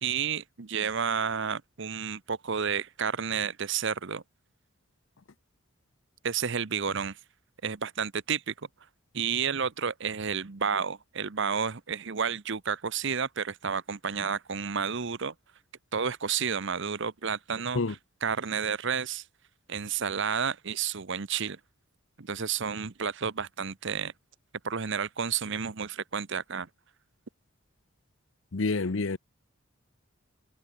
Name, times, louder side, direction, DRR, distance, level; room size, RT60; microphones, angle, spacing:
voice 1, 0.0-4.2 6.2-7.2 7.6-8.5 9.1-15.3 15.9-19.2 19.7-21.6 22.2-24.1 24.6-26.7, right 6 dB, 55° right, 0.9 m, -31 dB
voice 2, 28.5-29.2, left 3 dB, 60° left, 0.8 m, -28 dB
head